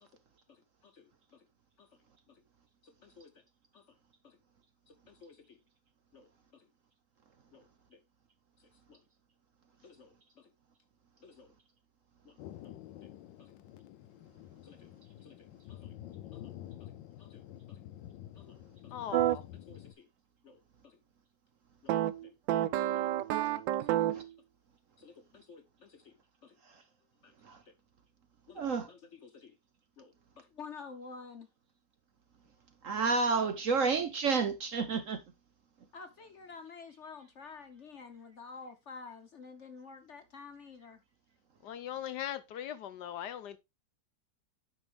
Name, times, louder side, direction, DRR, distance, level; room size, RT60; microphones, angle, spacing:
voice 1, 0.5-1.5 1.8-1.9 2.3-2.4 2.8-3.4 3.7-4.0 4.2-4.4 4.9-5.6 6.1-6.7 7.5-8.0 8.6-9.0 9.8-10.5 11.2-11.5 12.2-12.4 12.6-13.1 13.4-13.5 14.6-14.9 15.2-16.0 16.3-16.5 16.8-17.9 18.3-19.0 19.5-20.1 20.4-21.0 21.8-22.3 22.9-23.1 23.8-24.1 25.0-26.1 26.4-26.6 27.2-27.3 27.7-27.8 28.5-29.6 30.0-31.5 35.9-41.0, left 5 dB, 50° left, 1.0 m, -52 dB
Thunder, 12.4-19.9, left 12 dB, 90° left, 1.4 m, -49 dB
voice 2, 18.9-19.4 41.6-43.6, left 10 dB, 70° left, 1.2 m, -39 dB
sound 1, 19.1-19.4 21.9-24.3, right 13 dB, 85° right, 1.3 m, -29 dB
voice 3, 28.5-28.9 32.8-35.2, right 4 dB, 55° right, 1.0 m, -30 dB
9.3 x 5.5 x 3.4 m
omnidirectional pair, 2.0 m